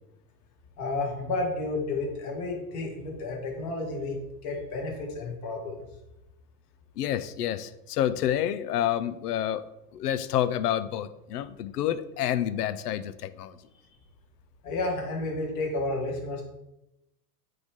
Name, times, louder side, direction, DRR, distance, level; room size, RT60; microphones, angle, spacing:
voice 1, 0.8-5.9 14.6-16.4, left 2 dB, 40° left, 0 dB, 2.0 m, -31 dB
voice 2, 7.0-9.6 9.9-13.6, left 11 dB, 90° left, 14 dB, 0.7 m, -28 dB
9.3 x 3.4 x 3.6 m, 0.89 s
supercardioid pair, 145°, 46 cm